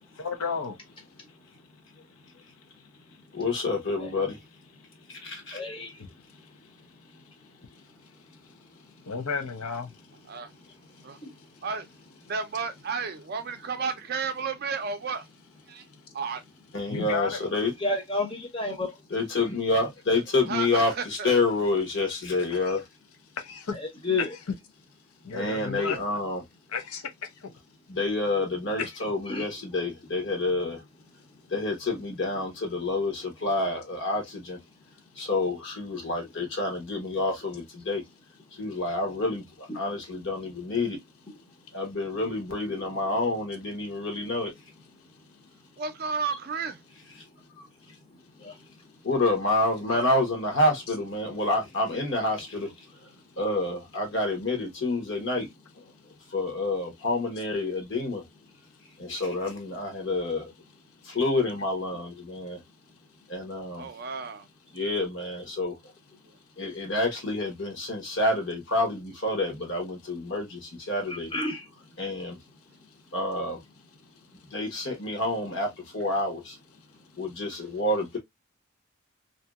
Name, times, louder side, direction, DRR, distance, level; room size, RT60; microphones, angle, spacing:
voice 1, 0.1-1.1 6.0-6.5 7.1-7.2 7.7-7.8 9.1-9.9 16.9-17.4 22.5-22.8 23.3-23.8 24.5-24.6 25.2-26.0 26.7-27.5 28.8-29.0 50.9-51.0, left 5 dB, 85° left, 0.7 m, -34 dB
voice 2, 3.3-4.3 5.2-5.6 16.7-17.7 19.1-22.8 25.3-26.4 27.9-30.8 31.5-34.6 35.2-38.0 38.6-39.4 39.7-41.0 41.7-44.5 49.0-52.7 53.4-55.5 56.3-58.2 59.0-60.5 61.1-62.6 63.3-63.9 64.7-65.8 66.6-71.3 72.0-72.4 73.1-73.6 74.5-76.6 77.2-78.2, left 2 dB, 55° left, 1.0 m, -28 dB
voice 3, 5.5-5.9 11.2-11.3 17.8-18.9 23.7-24.4 25.7-25.8 29.3-29.5 39.7-39.8 48.4-48.5 64.8-65.0 71.1-71.6, left 2 dB, 25° left, 0.6 m, -31 dB
voice 4, 12.3-15.3 15.7-15.8 16.1-16.4 20.5-21.3 45.8-46.8 49.9-50.1 63.8-64.5 66.3-66.4, right 5 dB, 45° right, 0.4 m, -32 dB
2.7 x 2.7 x 2.3 m
head